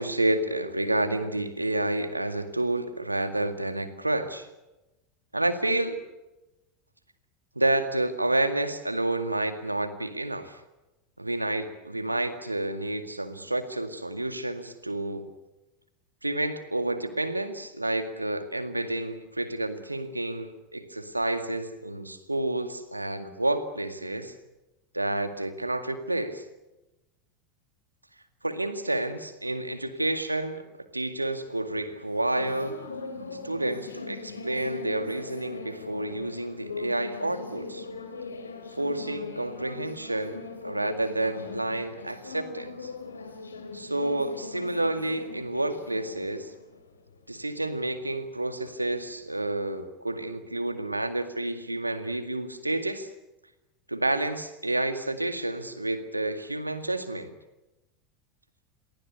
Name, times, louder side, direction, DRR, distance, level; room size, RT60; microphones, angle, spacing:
voice 1, 0.0-4.5 5.3-6.0 7.6-10.6 11.2-15.3 16.2-24.3 24.9-26.4 28.4-32.8 33.4-37.9 38.7-42.9 43.7-46.5 47.3-53.1 53.9-57.3, right 1 dB, 85° right, 9 dB, 2.0 m, -29 dB
sound 1, 31.4-49.8, left 4 dB, 75° left, 3.2 m, -41 dB
29.5 x 23.0 x 6.8 m, 1.0 s
figure-of-eight pair, 80°, 0 cm